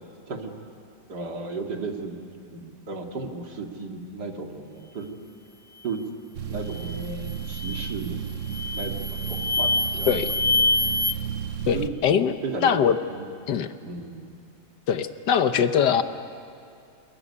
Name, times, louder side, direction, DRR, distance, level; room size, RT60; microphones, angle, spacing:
voice 1, 1.1-2.2 2.5-5.1 5.8-6.0 6.4-8.2 8.7-10.1 11.7-11.9 12.4-12.8 13.1-13.3 13.8-14.4, right 4 dB, 80° right, 2 dB, 2.8 m, -34 dB
sound 1, 6.3-11.9, right 8 dB, 55° right, 1.1 m, -33 dB
sound 2, 6.7-7.0 7.5-8.0 8.5-11.1, left 2 dB, 5° right, 0.5 m, -26 dB
voice 2, 11.7-12.3 12.6-13.0 13.5-13.7 14.9-16.0, left 8 dB, 90° left, 10 dB, 1.7 m, -22 dB
27.0 x 21.5 x 9.8 m, 2.4 s
omnidirectional pair, 1.8 m